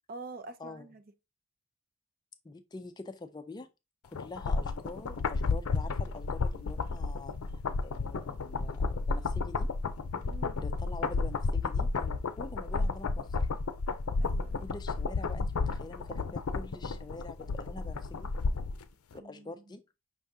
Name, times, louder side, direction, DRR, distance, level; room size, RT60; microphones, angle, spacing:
voice 1, 0.1-1.0 10.2-10.6 14.2-14.7 19.1-19.5, right 3 dB, 40° right, 0.5 m, -46 dB
voice 2, 2.4-3.7 4.0-7.4 7.8-9.7 10.6-13.5 14.6-18.3 19.1-19.8, left 2 dB, 20° left, 0.3 m, -45 dB
sound 1, 4.1-18.8 19.1-19.2, left 4 dB, 85° left, 0.5 m, -32 dB
5.4 x 3.6 x 2.7 m
head